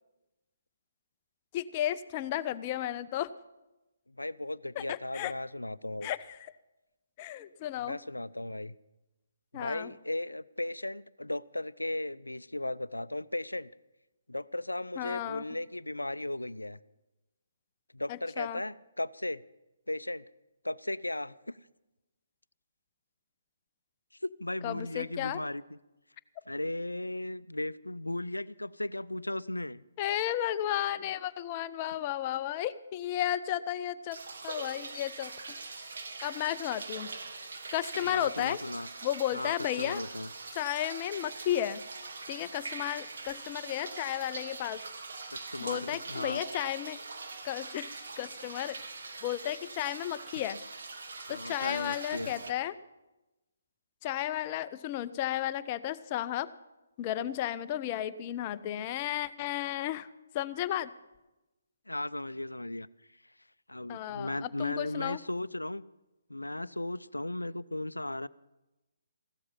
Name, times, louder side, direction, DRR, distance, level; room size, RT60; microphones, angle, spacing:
voice 1, 1.5-3.3 4.8-5.3 6.0-6.4 7.2-8.0 9.5-9.9 15.0-15.4 18.1-18.6 24.6-25.4 30.0-34.2 34.4-35.3 36.2-37.1 37.7-38.6 39.0-40.0 40.5-41.8 42.3-44.8 45.6-47.0 47.4-47.9 48.2-48.8 49.2-50.6 51.3-52.7 54.0-56.5 57.0-60.1 60.3-60.9 63.9-65.2, left 12 dB, 25° left, 14 dB, 0.5 m, -33 dB
voice 2, 4.1-6.1 7.8-8.8 9.5-13.7 14.3-16.8 17.9-19.4 19.9-20.2 20.6-21.6 24.2-25.8 26.5-29.8 37.9-38.9 39.3-40.3 45.3-46.4 51.3-52.3 61.9-62.9 63.7-65.8 66.3-68.3, left 1 dB, 80° left, 18 dB, 0.4 m, -36 dB
sound 1, 34.1-52.5, right 3 dB, 55° right, 1.7 m, -43 dB
15.5 x 12.5 x 5.6 m, 1.0 s
figure-of-eight pair, 140°, 0 cm